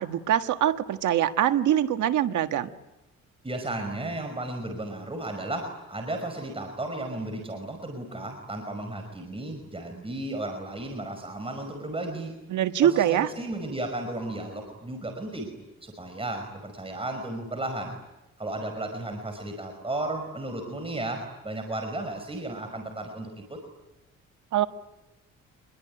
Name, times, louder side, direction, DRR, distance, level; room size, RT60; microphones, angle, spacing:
voice 1, 0.0-2.7 12.5-13.3 24.5-24.7, right 11 dB, 75° right, 8 dB, 1.6 m, -23 dB
voice 2, 3.4-12.4 12.8-15.5 15.8-17.9 18.4-23.6, right 2 dB, 20° right, 5 dB, 5.4 m, -34 dB
27.0 x 22.0 x 9.9 m, 0.99 s
cardioid pair, 90°, 30 cm